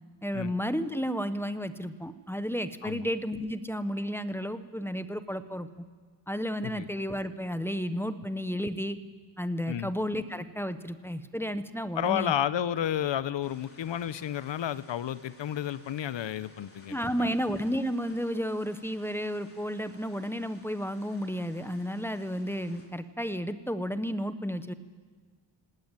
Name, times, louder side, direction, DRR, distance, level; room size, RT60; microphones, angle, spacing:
voice 1, 0.2-5.8 6.3-9.0 9.4-12.3 16.9-24.7, equal, 5° left, 10 dB, 0.9 m, -32 dB
voice 2, 12.0-17.3, left 10 dB, 75° left, 17 dB, 0.8 m, -31 dB
sound 1, 13.4-22.9, left 2 dB, 30° left, 3.8 m, -57 dB
18.5 x 18.0 x 9.0 m, 1.5 s
cardioid pair, 90°, 44 cm